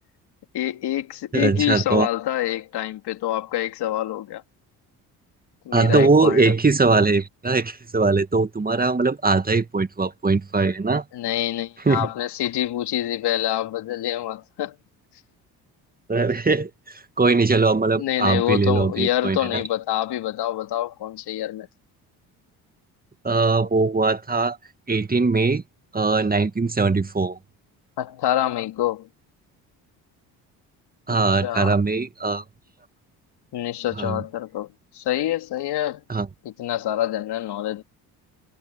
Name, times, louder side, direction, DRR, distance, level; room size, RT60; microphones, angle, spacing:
voice 1, 0.5-4.4 5.7-6.4 11.1-14.8 18.0-21.7 28.0-29.1 31.1-31.7 33.5-36.0 36.4-37.8, left 13 dB, 70° left, 3.5 m, -26 dB
voice 2, 1.3-2.1 5.7-11.0 11.9-12.1 16.1-19.6 23.2-24.6 24.9-25.6 25.9-27.4 31.1-32.4 34.0-34.2 36.1-36.3, right 3 dB, 20° right, 1.9 m, -21 dB
supercardioid pair, 70°, 42 cm